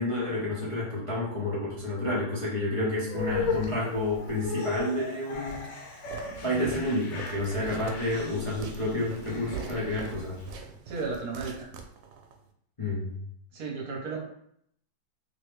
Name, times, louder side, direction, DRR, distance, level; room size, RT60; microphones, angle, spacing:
voice 1, 0.0-5.7 6.4-10.4 12.8-13.1, left 1 dB, 55° left, -8 dB, 0.3 m, -30 dB
sound 1, 3.1-10.5, left 3 dB, 85° left, 1.4 m, -37 dB
Walk footsteps, 5.5-12.4, right 6 dB, 90° right, 1.3 m, -42 dB
voice 2, 10.9-11.7 13.5-14.2, right 4 dB, 65° right, 0 dB, 1.2 m, -34 dB
3.1 x 3.0 x 3.2 m, 0.71 s
omnidirectional pair, 2.0 m